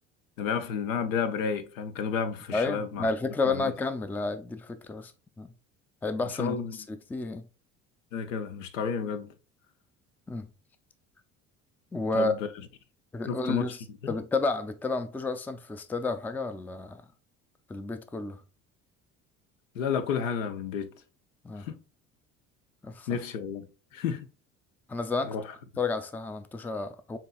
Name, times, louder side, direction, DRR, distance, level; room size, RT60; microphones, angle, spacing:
voice 1, 0.4-3.1 3.4-3.7 6.4-6.9 8.1-9.3 12.1-12.5 13.3-13.7 14.0-14.2 19.7-20.9 21.6-21.8 23.1-23.7 23.9-24.3 25.2-25.4, left 6 dB, 80° left, 0.6 m, -31 dB
voice 2, 2.5-5.1 5.4-5.5 6.0-6.6 6.9-7.5 10.3-10.5 11.9-12.3 13.1-13.8 14.1-17.0 17.7-18.4 21.4-21.7 22.8-23.2 24.9-25.4 25.8-27.2, left 3 dB, 5° left, 0.3 m, -31 dB
7.1 x 2.9 x 2.3 m
hypercardioid pair, 60°, 39 cm